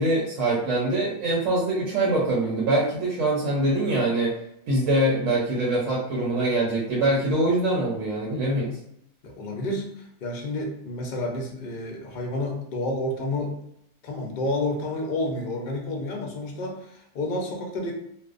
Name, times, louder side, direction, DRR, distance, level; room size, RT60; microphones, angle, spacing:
voice 1, 0.0-4.4 4.7-8.8, right 1 dB, 80° right, -4 dB, 1.0 m, -24 dB
voice 2, 9.2-9.9 10.2-13.6 14.0-17.9, left 1 dB, 55° left, 0 dB, 0.5 m, -30 dB
2.5 x 2.1 x 2.4 m, 0.77 s
omnidirectional pair, 1.4 m